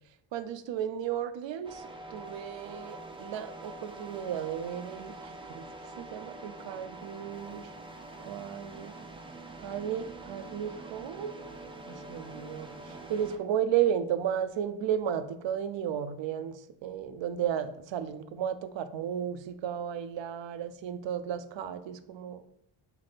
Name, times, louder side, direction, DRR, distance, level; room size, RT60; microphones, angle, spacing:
voice 1, 0.3-5.7 6.0-7.7 8.3-9.0 9.6-11.4 11.9-22.4, right 9 dB, 60° right, 11 dB, 0.5 m, -34 dB
sound 1, 1.6-13.4, right 2 dB, 10° right, 0.5 m, -45 dB
3.4 x 3.2 x 4.1 m, 0.71 s
cardioid pair, 75°, 50 cm